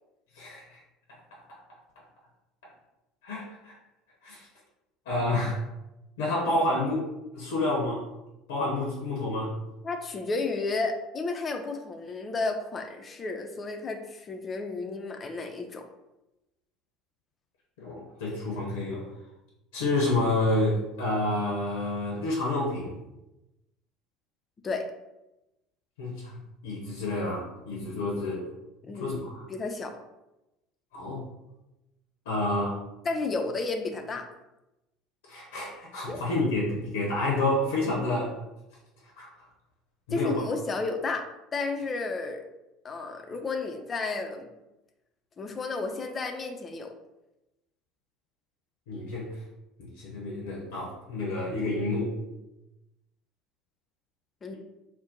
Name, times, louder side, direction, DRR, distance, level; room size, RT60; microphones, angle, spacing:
voice 1, 0.4-0.8 1.5-1.6 3.2-3.8 4.2-4.4 5.1-5.6 6.2-7.0 7.3-8.0 8.5-9.5 17.8-19.1 19.7-22.9 26.0-28.5 28.9-29.5 30.9-31.2 32.3-32.8 35.3-38.4 39.2-39.3 40.1-40.5 48.9-49.4 49.8-52.1, left 2 dB, 70° left, -3 dB, 0.6 m, -29 dB
voice 2, 9.8-15.9 24.6-24.8 28.8-29.2 29.5-30.0 33.0-34.2 36.1-36.2 40.1-41.2 41.5-42.4 42.8-44.5 45.4-46.9 54.4-54.5, left 3 dB, 30° left, 5 dB, 0.4 m, -32 dB
2.6 x 2.1 x 3.7 m, 0.95 s
figure-of-eight pair, 65°, 0 cm